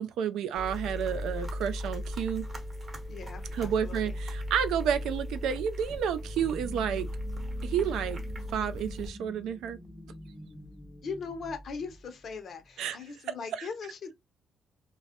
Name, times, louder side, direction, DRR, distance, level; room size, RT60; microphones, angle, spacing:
voice 1, 0.0-2.5 3.5-7.1 7.6-8.2 8.5-9.8 12.8-13.0 13.5-13.7, right 8 dB, 80° right, 0.3 m, -30 dB
sound 1, 0.5-9.1, left 1 dB, 35° right, 0.8 m, -37 dB
voice 2, 3.1-4.2 11.0-14.1, left 5 dB, 60° left, 0.7 m, -40 dB
sound 2, 6.2-12.7, equal, 5° right, 0.5 m, -48 dB
2.2 x 2.0 x 2.8 m
cardioid pair, 90°, 0 cm